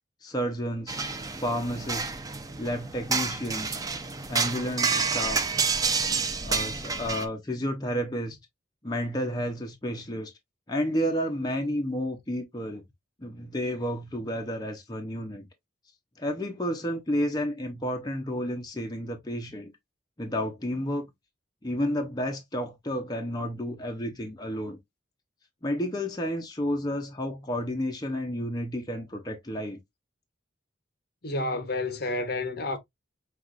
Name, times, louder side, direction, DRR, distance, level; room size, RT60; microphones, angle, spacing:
voice 1, 0.2-1.0 1.4-2.1 2.6-3.8 4.3-5.5 6.4-8.4 8.8-10.3 10.7-12.8 13.2-15.5 16.2-19.7 20.2-21.0 21.6-24.8 25.6-29.8, equal, 20° left, 0.7 m, -31 dB
sound 1, 0.9-7.3, right 5 dB, 20° right, 0.4 m, -29 dB
voice 2, 31.2-32.8, left 2 dB, 50° left, 0.9 m, -30 dB
5.8 x 2.9 x 2.4 m
head